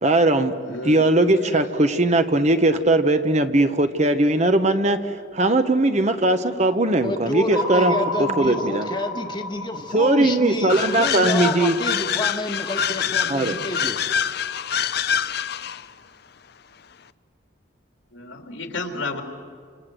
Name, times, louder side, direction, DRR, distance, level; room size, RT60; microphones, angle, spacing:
voice 1, 0.0-0.5 0.8-8.9 9.9-11.7 13.3-13.6, right 2 dB, 35° right, 9 dB, 1.1 m, -19 dB
voice 2, 0.7-1.0 1.4-1.5 8.5-8.6 18.1-19.2, left 3 dB, 85° left, 4 dB, 3.1 m, -32 dB
voice 3, 6.9-14.0, left 2 dB, 25° left, 4 dB, 1.5 m, -29 dB
sound 1, 7.5-11.8, equal, 20° right, 2.1 m, -30 dB
sound 2, 10.7-15.9, left 7 dB, 55° left, 0.6 m, -25 dB
29.5 x 26.0 x 7.7 m, 2.1 s
head